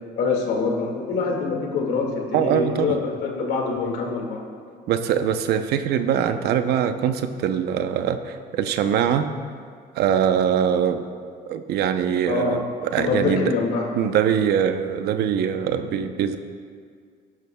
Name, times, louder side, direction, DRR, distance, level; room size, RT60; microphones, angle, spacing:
voice 1, 0.2-4.5 12.2-12.6 13.0-13.9, left 4 dB, 80° left, 1 dB, 2.0 m, -25 dB
voice 2, 2.3-3.0 4.9-9.3 10.0-11.1 11.5-12.6 12.9-13.5 14.0-16.4, right 8 dB, 75° right, 8 dB, 0.7 m, -22 dB
17.5 x 11.0 x 2.3 m, 2.1 s
cardioid pair, 110°, 17 cm